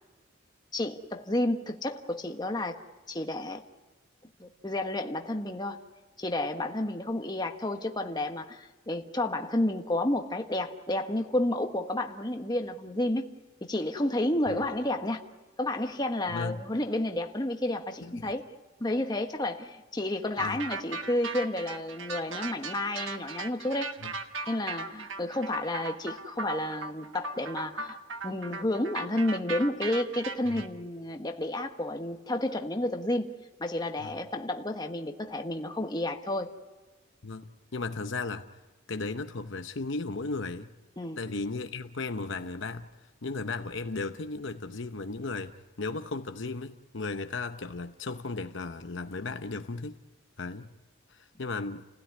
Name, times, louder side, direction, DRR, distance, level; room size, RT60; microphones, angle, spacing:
voice 1, 0.7-2.8 3.1-3.6 4.4-5.8 6.2-13.3 13.6-15.2 15.6-18.5 18.8-23.9 24.5-28.0 28.2-33.3 33.6-36.5 41.0-41.2, left 1 dB, 20° left, 1.4 m, -31 dB
voice 2, 16.3-16.6 18.0-18.3 20.4-20.6 24.0-24.1 30.5-30.6 34.0-34.1 37.2-38.5 38.9-40.7 41.2-42.9 43.2-50.0 50.4-50.7 51.1-51.8, left 3 dB, 60° left, 0.9 m, -35 dB
sound 1, 20.4-30.7, right 3 dB, 65° right, 1.5 m, -37 dB
30.0 x 16.5 x 9.6 m
head